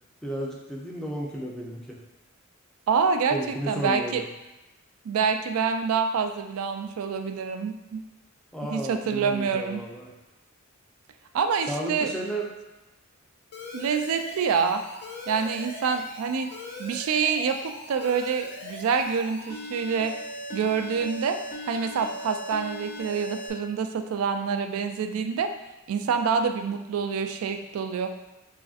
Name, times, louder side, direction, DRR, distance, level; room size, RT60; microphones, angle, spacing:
voice 1, 0.2-2.0 3.3-4.3 8.5-10.1 11.7-12.5, right 1 dB, 5° left, -3 dB, 0.5 m, -33 dB
voice 2, 2.9-4.2 5.0-8.0 8.7-9.8 11.3-12.1 13.7-14.8 15.3-16.5 16.8-20.1 20.5-21.4 21.7-25.5 25.9-28.1, right 6 dB, 85° right, 7 dB, 0.3 m, -26 dB
Alarm, 13.5-23.5, left 1 dB, 55° left, 0.6 m, -39 dB
4.7 x 2.5 x 2.4 m, 1.0 s
head